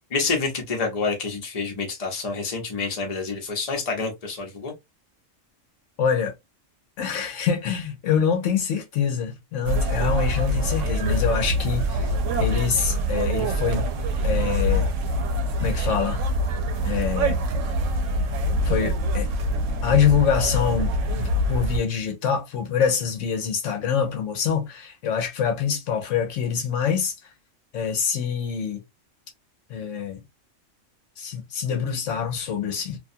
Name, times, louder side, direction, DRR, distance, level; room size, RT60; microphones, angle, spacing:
voice 1, 0.1-4.7 19.9-20.0, left 4 dB, 35° left, 0.8 m, -28 dB
voice 2, 6.0-6.3 7.0-12.1 12.4-13.9 14.2-14.9 15.6-16.2 16.8-17.4 18.6-19.3 19.8-27.1 27.7-28.8 29.7-30.2 31.2-33.0, left 7 dB, 75° left, 1.0 m, -25 dB
sound 1, 9.7-21.8, equal, 75° right, 0.9 m, -24 dB
2.5 x 2.3 x 2.5 m
omnidirectional pair, 1.3 m